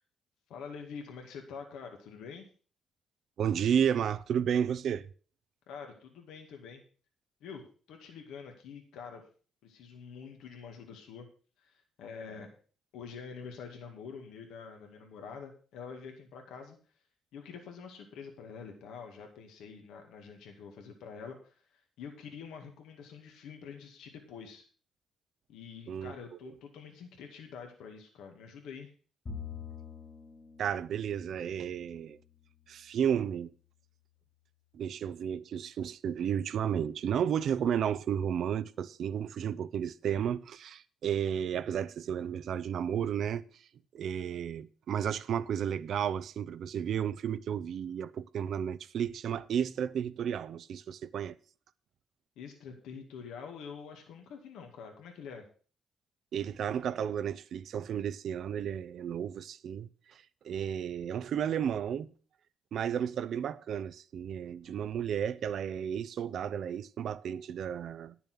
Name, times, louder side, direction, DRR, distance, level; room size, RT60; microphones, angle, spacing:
voice 1, 0.5-2.5 5.7-6.8 7.4-9.2 9.6-11.3 11.6-12.5 12.9-16.8 17.3-24.6 25.5-28.9 52.4-55.4, left 6 dB, 85° left, 2.0 m, -46 dB
voice 2, 3.4-5.1 25.9-26.1 30.6-32.2 32.7-33.5 34.7-43.6 43.9-51.4 56.3-62.1 62.7-68.2, right 8 dB, 65° right, 0.6 m, -32 dB
Bowed string instrument, 29.3-32.8, left 6 dB, 40° left, 2.3 m, -46 dB
10.5 x 6.9 x 6.1 m
cardioid pair, 90°, 0 cm